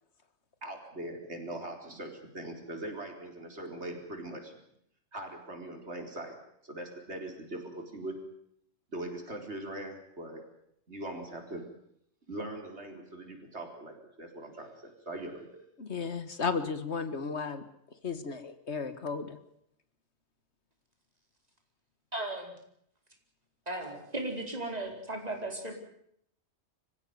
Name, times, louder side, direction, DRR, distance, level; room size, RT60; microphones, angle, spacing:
voice 1, 0.6-4.6 5.1-6.3 6.6-8.1 8.9-10.4 10.9-11.6 12.3-15.6, right 1 dB, 80° right, 3 dB, 4.6 m, -41 dB
voice 2, 15.8-17.6 18.0-19.4, left 5 dB, 75° left, 11 dB, 2.0 m, -34 dB
voice 3, 22.1-22.5 23.7-25.7, right 1 dB, 35° right, 3 dB, 4.7 m, -36 dB
25.5 x 15.5 x 9.5 m, 0.72 s
omnidirectional pair, 1.1 m